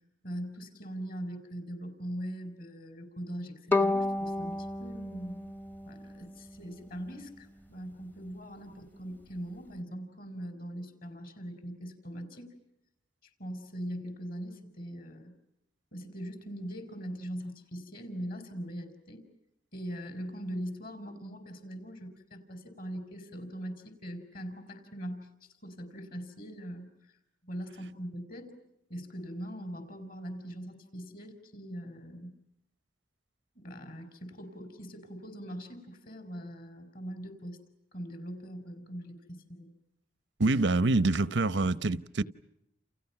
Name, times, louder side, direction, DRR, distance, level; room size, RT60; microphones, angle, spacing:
voice 1, 0.2-5.5 5.9-12.5 13.4-15.3 15.9-19.2 19.7-27.1 27.4-28.6 28.9-32.4 33.5-37.6 37.9-39.7, equal, 55° left, 4.8 m, -41 dB
Bowed string instrument, 3.7-6.8, left 2 dB, 10° left, 0.9 m, -31 dB
voice 2, 40.4-42.2, right 2 dB, 85° right, 0.9 m, -26 dB
29.5 x 29.5 x 6.0 m
head